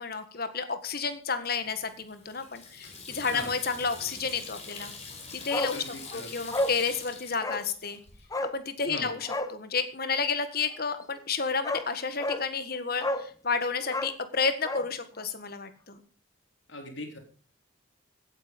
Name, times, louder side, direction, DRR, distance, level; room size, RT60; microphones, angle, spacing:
voice 1, 0.0-4.9 5.3-5.8 6.1-8.0 8.5-16.0, left 5 dB, 50° left, 10 dB, 1.6 m, -31 dB
Water tap faucet / Sink (filling or washing), 1.5-8.3, left 4 dB, 35° left, 4.2 m, -44 dB
Bark, 5.5-5.8 6.1-6.2 6.5-6.8 7.4-7.7 8.3-8.6 9.2-9.5 11.1-11.2 11.6-11.9 12.2-12.4 13.0-13.3 13.8-14.9 15.2-15.3, left 1 dB, 20° left, 0.9 m, -31 dB
voice 2, 5.7-6.3 8.9-9.2 16.7-17.2, left 1 dB, 65° left, 3 dB, 3.9 m, -39 dB
16.0 x 9.2 x 5.3 m, 0.41 s
head